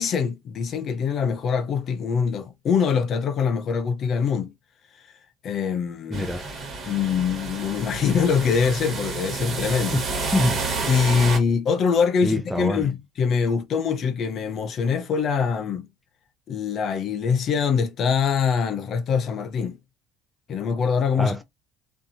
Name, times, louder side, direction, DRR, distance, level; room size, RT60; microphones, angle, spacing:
voice 1, 0.0-4.5 5.4-6.3 6.9-10.0 10.9-15.8 16.5-19.8 20.5-21.4, left 6 dB, 45° left, 0.6 m, -23 dB
voice 2, 6.1-6.5 9.9-10.6 12.2-12.9 21.1-21.4, left 1 dB, ahead, 0.3 m, -26 dB
sound 1, 6.1-11.4, right 4 dB, 35° right, 1.5 m, -30 dB
2.7 x 2.6 x 2.5 m
cardioid pair, 130°, 0 cm